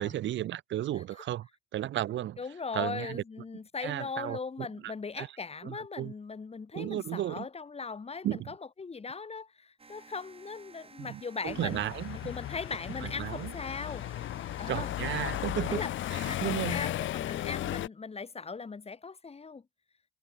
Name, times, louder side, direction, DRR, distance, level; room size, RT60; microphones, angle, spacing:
voice 1, 0.0-2.4 2.7-3.2 3.8-5.3 5.6-6.1 6.7-7.5 8.2-8.5 11.0-12.2 13.0-13.5 14.7-15.8 16.1-16.9, right 13 dB, 70° right, 0.8 m, -34 dB
voice 2, 2.4-11.8 12.2-14.1 14.6-14.9 15.7-15.9 16.2-19.6, left 4 dB, 30° left, 2.9 m, -39 dB
sound 1, 9.8-16.8, right 4 dB, 30° right, 4.8 m, -55 dB
sound 2, 11.4-17.9, left 13 dB, 75° left, 1.3 m, -35 dB
cardioid pair, 90°, 20 cm